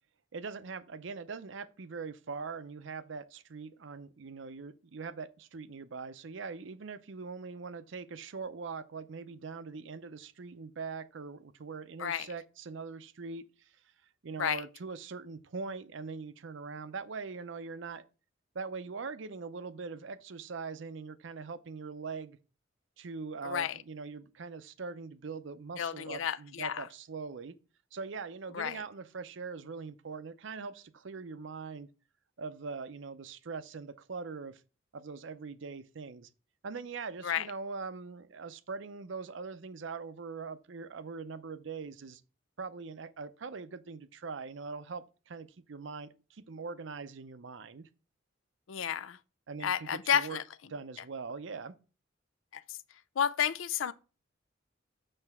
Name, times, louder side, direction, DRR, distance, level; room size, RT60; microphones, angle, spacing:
voice 1, 0.3-13.7 14.2-18.0 18.5-22.4 23.0-27.6 27.9-31.9 32.4-34.6 34.9-36.3 36.6-42.2 42.6-47.9 49.5-50.4 50.7-51.8, right 4 dB, 65° right, 0.6 m, -42 dB
voice 2, 23.4-23.7 25.8-26.9 28.5-28.8 37.2-37.4 48.7-49.2 49.6-50.4 52.5-52.6 53.2-53.9, left 8 dB, 80° left, 0.4 m, -31 dB
7.7 x 3.3 x 5.9 m
head